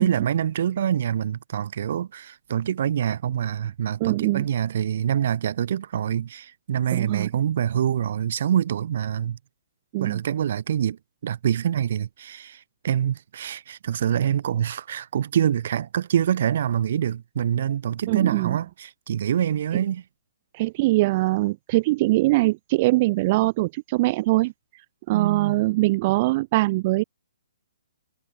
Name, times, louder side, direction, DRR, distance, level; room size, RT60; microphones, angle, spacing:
voice 1, 0.0-9.4 10.0-20.0 25.1-25.6, right 9 dB, 50° right, 2.4 m, -25 dB
voice 2, 4.0-4.4 6.9-7.3 9.9-10.2 18.1-18.6 20.5-24.5 25.1-27.0, right 20 dB, 30° right, 1.6 m, -22 dB
hypercardioid pair, 165°, 0 cm